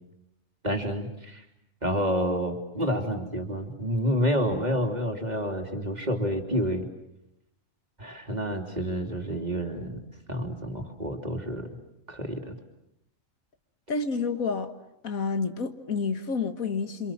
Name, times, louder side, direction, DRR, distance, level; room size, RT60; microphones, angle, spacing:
voice 1, 0.6-1.4 1.8-6.9 8.0-10.0 10.3-11.7 12.1-12.5, equal, 30° right, 3.2 m, -29 dB
voice 2, 13.9-14.7 15.0-17.1, left 4 dB, 85° left, 2.1 m, -29 dB
28.5 x 26.5 x 7.4 m
omnidirectional pair, 1.4 m